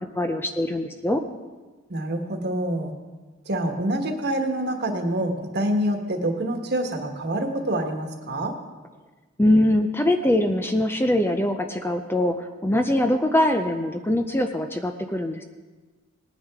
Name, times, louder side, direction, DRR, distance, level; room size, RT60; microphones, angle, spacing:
voice 1, 0.2-1.2 9.4-15.4, left 1 dB, 10° left, 6 dB, 0.5 m, -22 dB
voice 2, 1.9-2.9 3.4-8.6, right 1 dB, 50° right, 4 dB, 1.4 m, -26 dB
19.0 x 9.8 x 3.6 m, 1.3 s
head